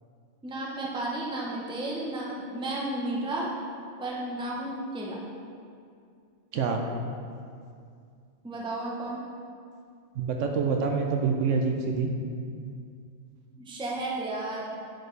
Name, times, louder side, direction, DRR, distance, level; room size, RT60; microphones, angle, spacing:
voice 1, 0.4-3.5 4.0-5.2 8.4-9.2 13.6-14.7, right 2 dB, 5° right, -3 dB, 0.6 m, -33 dB
voice 2, 10.2-12.1, right 5 dB, 70° right, 2 dB, 0.9 m, -26 dB
8.8 x 4.7 x 3.2 m, 2.3 s
omnidirectional pair, 1.4 m